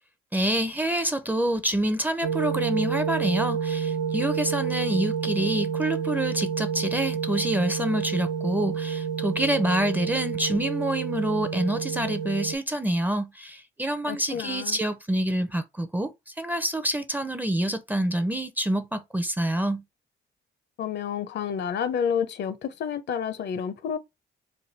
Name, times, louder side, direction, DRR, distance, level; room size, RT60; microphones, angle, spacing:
voice 1, 0.3-19.8, right 1 dB, 10° right, 0.5 m, -27 dB
sound 1, 2.2-12.6, right 7 dB, 65° right, 0.5 m, -29 dB
voice 2, 14.1-14.8 20.8-24.0, left 7 dB, 60° left, 0.6 m, -29 dB
3.4 x 2.3 x 3.9 m
cardioid pair, 90°, 20 cm